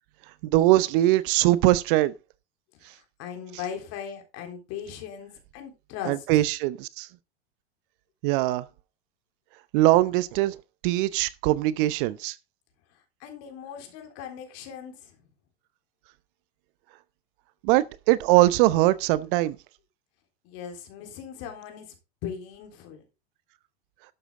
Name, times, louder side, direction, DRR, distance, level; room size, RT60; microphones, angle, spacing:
voice 1, 0.4-2.1 6.1-7.1 8.2-8.6 9.7-10.6 10.8-12.4 17.6-19.6, right 16 dB, 50° right, 0.8 m, -21 dB
voice 2, 2.8-6.4 13.2-15.2 20.4-21.9 22.2-23.0, left 8 dB, 50° left, 3.7 m, -39 dB
12.0 x 8.0 x 3.7 m
hypercardioid pair, 95°, 33 cm